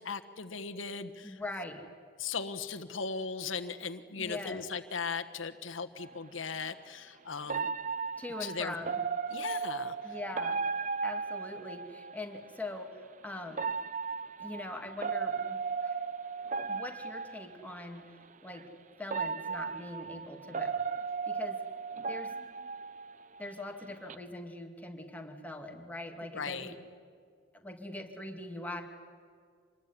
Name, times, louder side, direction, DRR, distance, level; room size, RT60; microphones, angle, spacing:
voice 1, 0.0-1.4 2.2-7.7 8.4-8.8 9.3-10.2 26.3-26.7, left 5 dB, 85° left, 8 dB, 1.3 m, -38 dB
voice 2, 1.2-1.8 4.1-4.6 8.2-9.0 10.0-10.6 11.0-12.9 13.2-13.7 14.4-16.0 16.7-18.1 18.4-18.7 19.0-20.8 21.3-21.6 22.1-22.3 23.4-26.7 27.5-28.8, left 2 dB, 10° left, 3 dB, 2.4 m, -42 dB
sound 1, 6.0-6.1 7.5-12.2 13.5-17.7 18.5-18.6 19.1-23.5 23.8-24.1, right 5 dB, 40° right, 0.6 m, -36 dB
26.5 x 20.5 x 9.9 m, 2.1 s
head